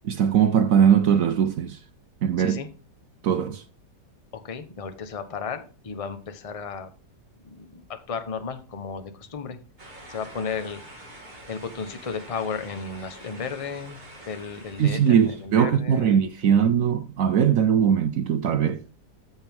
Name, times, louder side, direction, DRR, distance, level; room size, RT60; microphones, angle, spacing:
voice 1, 0.0-1.8 2.2-2.6 3.2-3.6 14.8-18.8, right 8 dB, 65° right, 0.9 m, -20 dB
voice 2, 2.4-2.7 4.3-6.9 7.4-9.6 10.1-10.8 11.5-14.0 14.3-16.2, left 5 dB, 30° left, 0.7 m, -34 dB
sound 1, 9.8-15.5, right 1 dB, 25° right, 2.3 m, -46 dB
13.5 x 4.6 x 3.5 m
omnidirectional pair, 1.8 m